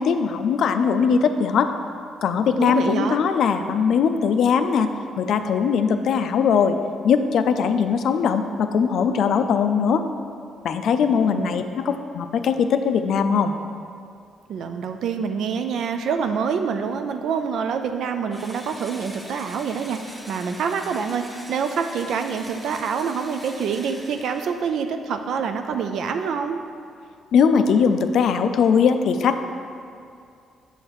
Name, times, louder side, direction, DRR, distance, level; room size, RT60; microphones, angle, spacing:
voice 1, 0.0-1.7 2.2-4.9 5.2-6.8 7.0-10.0 10.6-13.5 27.3-29.5, left 6 dB, 70° left, 8 dB, 0.4 m, -20 dB
voice 2, 2.6-3.2 11.1-11.5 11.9-12.0 14.5-26.6, right 6 dB, 70° right, 7 dB, 0.3 m, -26 dB
Engine / Drill, 18.3-24.9, equal, 10° right, 0.8 m, -43 dB
6.5 x 6.3 x 3.0 m, 2.4 s
cardioid pair, 90°, 0 cm